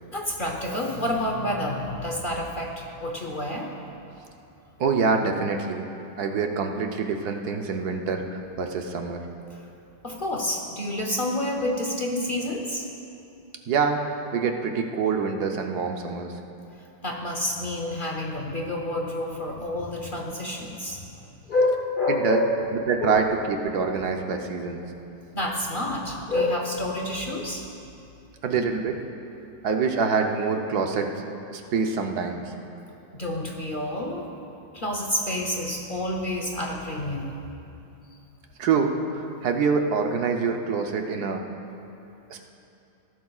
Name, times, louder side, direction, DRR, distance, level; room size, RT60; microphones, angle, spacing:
voice 1, 0.1-3.7 9.5-9.6 10.0-12.9 17.0-21.1 21.5-22.6 23.0-23.2 25.3-27.7 33.1-34.3 34.7-37.4, left 1 dB, 50° left, 1 dB, 0.6 m, -28 dB
voice 2, 4.8-5.9 6.2-9.2 13.7-14.0 14.3-16.3 22.1-22.4 22.9-24.8 28.4-29.0 29.6-31.1 31.5-32.4 38.6-41.4 42.3-42.5, right 5 dB, 65° right, 3 dB, 1.2 m, -25 dB
19.0 x 12.0 x 2.4 m, 2.8 s
omnidirectional pair, 2.0 m